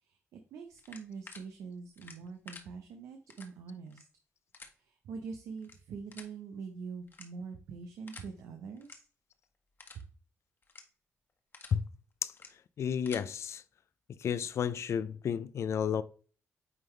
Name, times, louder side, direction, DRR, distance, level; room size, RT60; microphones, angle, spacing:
voice 1, 0.0-4.1 4.8-9.0 9.9-10.0, right 5 dB, 90° right, 0.8 m, -44 dB
sound 1, 0.8-1.4 2.0-2.6 3.3-3.5 3.9-4.0 4.5-4.7 5.6-5.7 6.1-6.3 7.1-7.5 8.1-8.3 8.8-8.9 9.3-9.4 9.8-10.0 10.6-10.8 11.3-11.7 12.3-12.5 12.9-13.2, left 4 dB, 45° left, 1.4 m, -50 dB
voice 2, 12.8-13.6 14.2-16.0, left 8 dB, 65° left, 0.5 m, -32 dB
9.4 x 3.7 x 3.2 m
cardioid pair, 70°, 5 cm